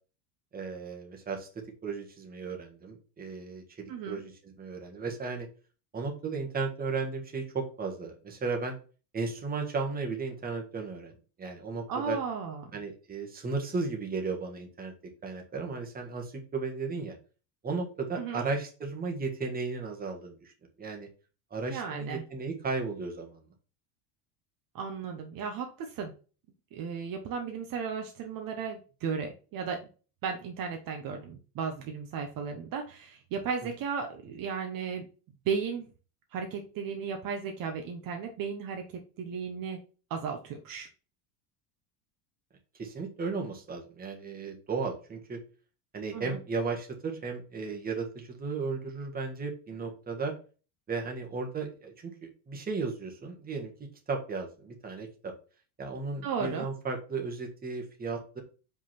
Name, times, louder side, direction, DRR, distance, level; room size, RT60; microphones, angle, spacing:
voice 1, 0.5-1.5 1.8-3.6 4.1-5.5 5.9-8.8 9.1-11.1 11.4-12.2 12.7-14.9 15.2-17.2 17.6-20.5 20.8-21.1 21.5-23.4 42.8-45.4 45.9-50.3 50.9-53.7 54.1-55.3 55.8-58.4, right 4 dB, 20° right, 2 dB, 1.5 m, -35 dB
voice 2, 3.9-4.2 11.9-12.7 18.2-18.4 21.7-22.2 24.7-26.1 26.7-29.9 30.2-35.1 35.4-35.9 36.3-39.8 40.1-40.9 46.1-46.4 56.2-56.7, right 6 dB, 45° right, 4 dB, 1.1 m, -35 dB
5.3 x 3.9 x 5.8 m, 0.36 s
cardioid pair, 150°, 48 cm